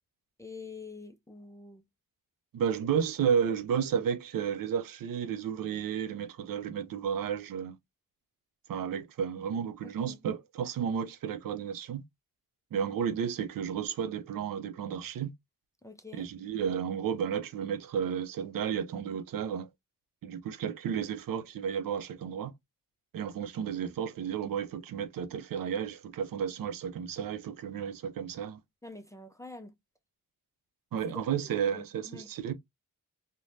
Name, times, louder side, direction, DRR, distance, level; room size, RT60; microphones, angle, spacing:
voice 1, 0.4-1.8 9.8-10.2 15.8-16.3 28.8-29.7 31.1-31.2 31.7-32.3, left 3 dB, 10° left, 0.3 m, -46 dB
voice 2, 2.5-7.8 8.7-12.0 12.7-15.3 16.1-19.7 20.2-22.5 23.1-28.6 30.9-32.5, right 8 dB, 85° right, 0.5 m, -32 dB
3.2 x 2.1 x 2.5 m
wide cardioid pair, 115°, 33 cm